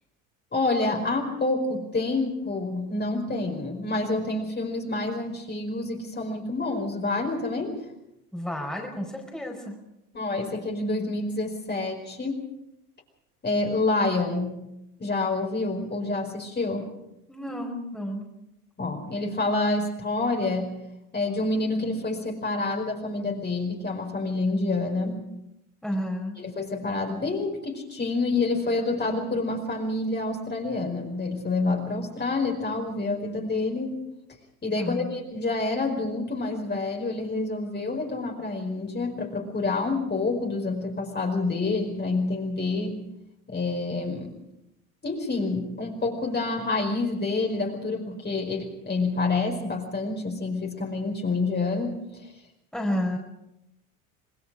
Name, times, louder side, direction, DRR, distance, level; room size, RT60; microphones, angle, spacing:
voice 1, 0.5-7.8 10.1-12.4 13.4-14.6 15.0-16.9 18.8-20.7 21.1-25.3 26.4-34.0 34.6-43.0 43.5-44.4 45.0-52.0, left 3 dB, 25° left, 1 dB, 5.0 m, -28 dB
voice 2, 8.3-9.8 17.3-18.3 25.8-26.4 34.8-35.1 52.7-53.2, equal, ahead, 0 dB, 4.7 m, -31 dB
27.0 x 19.5 x 5.0 m, 0.85 s
hypercardioid pair, 85°, 44 cm